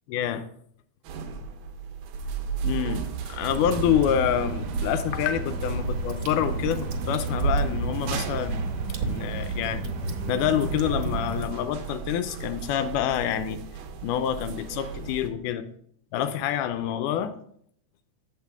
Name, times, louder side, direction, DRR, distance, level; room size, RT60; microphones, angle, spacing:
voice 1, 0.1-0.5 2.6-8.6 9.0-9.9 10.3-13.6 14.0-15.7 16.1-17.4, left 10 dB, 85° left, 9 dB, 2.1 m, -27 dB
sound 1, 1.0-15.3, right 6 dB, 85° right, 2.5 m, -37 dB
Water / Drip, 3.5-11.4, right 3 dB, 65° right, 1.5 m, -30 dB
8.0 x 7.5 x 3.5 m, 0.65 s
omnidirectional pair, 3.6 m